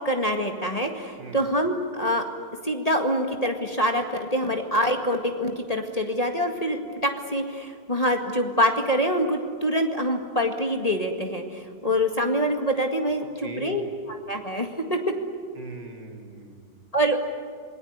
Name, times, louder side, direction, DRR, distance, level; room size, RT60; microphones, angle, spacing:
voice 1, 0.0-2.2 2.6-13.8 14.1-15.0 16.9-17.2, equal, 20° left, 4 dB, 1.9 m, -25 dB
voice 2, 13.4-13.9 15.5-16.9, right 2 dB, 85° right, 2 dB, 3.9 m, -41 dB
27.0 x 20.0 x 9.6 m, 2.1 s
omnidirectional pair, 1.9 m